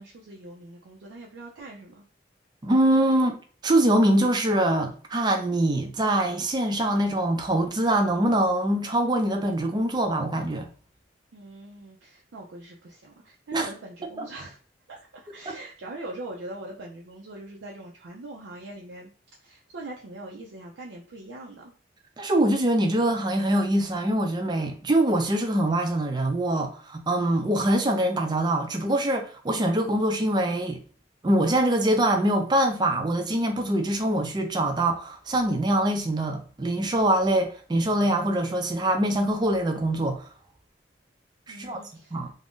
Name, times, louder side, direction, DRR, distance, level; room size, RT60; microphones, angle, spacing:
voice 1, 0.0-2.0 11.3-14.6 14.9-19.1 19.4-21.7 41.5-42.2, right 2 dB, 85° right, 0.5 m, -42 dB
voice 2, 2.6-3.4 3.6-10.7 13.5-13.7 14.2-14.3 15.5-15.6 22.2-30.8 31.2-40.3 41.5-41.8 42.1-42.3, right 1 dB, 25° right, 0.4 m, -24 dB
2.5 x 2.0 x 3.5 m
head